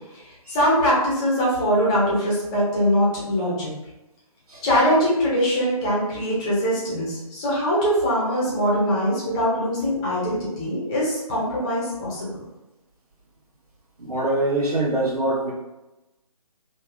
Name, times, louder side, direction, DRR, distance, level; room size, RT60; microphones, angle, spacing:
voice 1, 0.5-3.7 4.6-12.3, equal, 10° left, -6 dB, 0.5 m, -22 dB
voice 2, 14.0-15.5, right 2 dB, 75° right, -7 dB, 1.4 m, -24 dB
3.2 x 2.5 x 2.4 m, 0.99 s
figure-of-eight pair, 155°, 20 cm